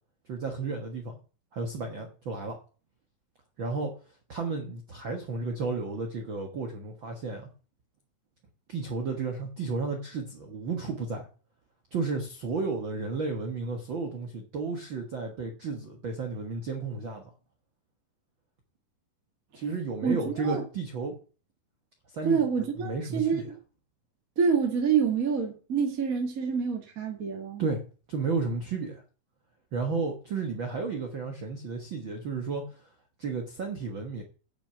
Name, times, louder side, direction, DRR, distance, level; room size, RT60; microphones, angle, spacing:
voice 1, 0.3-1.2 1.5-2.6 3.6-4.0 4.3-7.5 8.7-11.3 11.9-17.2 19.5-21.1 22.1-23.5 27.6-27.8 28.1-29.0 29.7-32.9 33.2-34.2, right 4 dB, 60° right, 1.3 m, -33 dB
voice 2, 20.0-20.6 22.2-23.5 24.3-27.6, right 6 dB, 35° right, 1.6 m, -27 dB
10.0 x 6.1 x 7.7 m
omnidirectional pair, 4.2 m